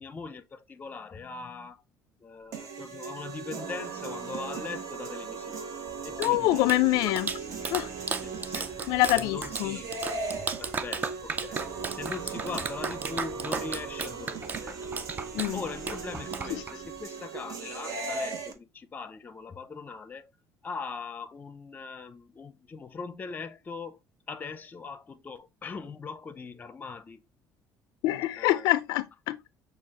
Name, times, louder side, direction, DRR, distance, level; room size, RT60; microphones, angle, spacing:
voice 1, 0.0-1.8 2.2-5.8 6.0-6.7 8.1-8.7 9.1-9.9 10.4-11.6 11.9-14.8 15.1-20.3 20.6-24.0 24.3-27.2 28.4-28.7, left 4 dB, 25° left, 0.5 m, -41 dB
sound 1, 2.5-18.5, right 4 dB, 55° right, 1.1 m, -38 dB
Clapping, 5.9-17.0, right 4 dB, 25° right, 0.4 m, -36 dB
voice 2, 6.2-7.3 7.6-7.9 8.9-9.8 15.3-15.6 16.5-16.6 17.7-17.8 28.0-29.5, left 17 dB, 85° left, 0.4 m, -25 dB
6.2 x 2.4 x 3.6 m
cardioid pair, 130°, 7 cm